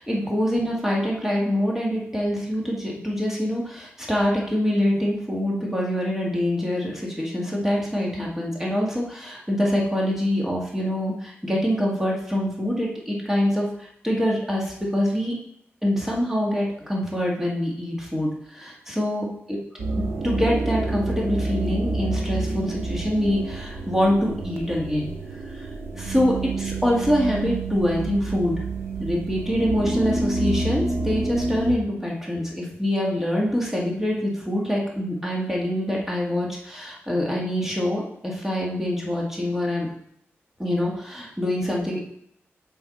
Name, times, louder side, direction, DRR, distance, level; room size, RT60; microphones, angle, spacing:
voice 1, 0.0-15.4 15.8-19.6 19.9-25.1 25.5-25.7 26.0-28.6 29.0-39.9 40.6-42.0, equal, 10° right, -3 dB, 1.7 m, -25 dB
sound 1, 19.8-31.8, right 2 dB, 75° right, 0.9 m, -28 dB
7.0 x 4.7 x 4.2 m, 0.72 s
wide cardioid pair, 130°, 5 cm